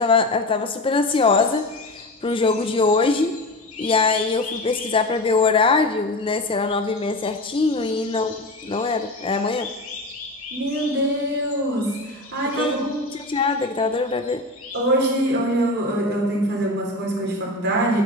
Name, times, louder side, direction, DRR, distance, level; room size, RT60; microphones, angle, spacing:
voice 1, 0.0-3.4 3.8-9.7 12.5-12.8 13.3-14.4, left 4 dB, 25° left, 9 dB, 0.5 m, -22 dB
sound 1, 1.2-14.9, left 4 dB, 70° left, 2.2 m, -40 dB
voice 2, 10.5-12.9 14.7-18.0, right 1 dB, 50° right, 0 dB, 3.1 m, -23 dB
11.0 x 8.7 x 6.8 m, 1.2 s
head